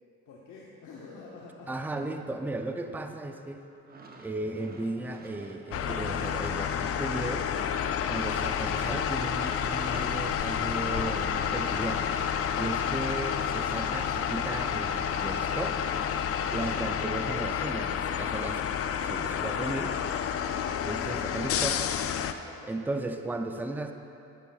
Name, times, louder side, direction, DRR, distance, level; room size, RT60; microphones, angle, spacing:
voice 1, 0.3-1.9 22.2-22.9, left 4 dB, 80° left, -4 dB, 0.9 m, -48 dB
voice 2, 1.7-3.6 4.2-7.5 8.1-12.2 12.5-15.8 16.5-18.6 19.0-20.0 20.8-21.9 22.6-23.9, right 2 dB, 5° right, 6 dB, 0.4 m, -35 dB
sound 1, 3.7-14.4 14.7-16.6, right 3 dB, 30° right, 0.9 m, -49 dB
sound 2, 5.7-22.3, left 8 dB, 50° left, 0.4 m, -30 dB
9.9 x 9.6 x 2.4 m, 2.7 s
cardioid pair, 90°, 30 cm